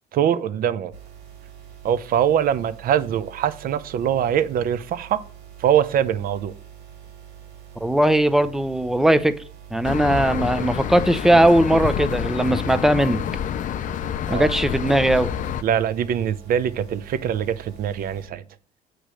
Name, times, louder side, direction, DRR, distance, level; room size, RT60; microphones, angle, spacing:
voice 1, 0.1-0.9 1.8-5.2 5.6-6.5 14.3-14.5 15.6-18.4, right 9 dB, 60° right, 0.7 m, -23 dB
sound 1, 0.9-18.3, right 10 dB, 90° right, 2.2 m, -45 dB
voice 2, 7.8-9.3 9.7-13.2 14.3-15.3, right 1 dB, ahead, 0.5 m, -19 dB
sound 2, 9.8-15.6, left 9 dB, 50° left, 0.5 m, -28 dB
8.3 x 3.1 x 6.2 m
cardioid pair, 110°, 17 cm